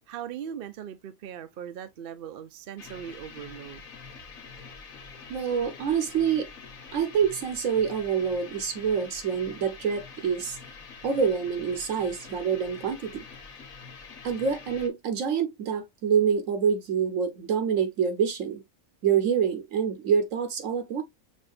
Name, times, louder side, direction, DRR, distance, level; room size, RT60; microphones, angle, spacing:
voice 1, 0.1-3.8, right 9 dB, 60° right, 0.6 m, -39 dB
sound 1, 2.8-14.9, left 5 dB, 90° left, 1.5 m, -46 dB
voice 2, 5.3-6.5 6.9-10.6 11.0-13.2 14.2-18.6 19.0-21.0, right 7 dB, 75° right, 1.2 m, -26 dB
6.2 x 2.7 x 2.5 m
omnidirectional pair, 1.4 m